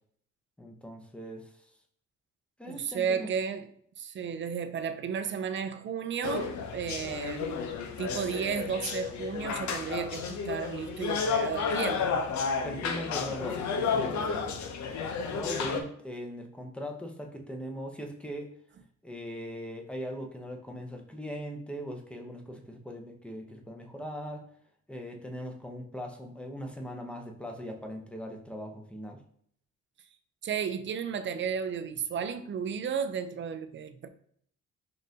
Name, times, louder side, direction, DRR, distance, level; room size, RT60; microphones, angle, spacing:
voice 1, 0.6-1.7 2.6-3.3 12.6-18.5 19.0-24.5 24.9-29.2, equal, 5° left, 0.7 m, -40 dB
voice 2, 2.7-3.7 4.0-7.5 8.0-12.2 30.4-34.1, right 7 dB, 40° right, 0.4 m, -33 dB
sound 1, 6.2-15.8, left 5 dB, 70° left, 0.6 m, -32 dB
5.3 x 2.6 x 2.7 m
cardioid pair, 90°, 30 cm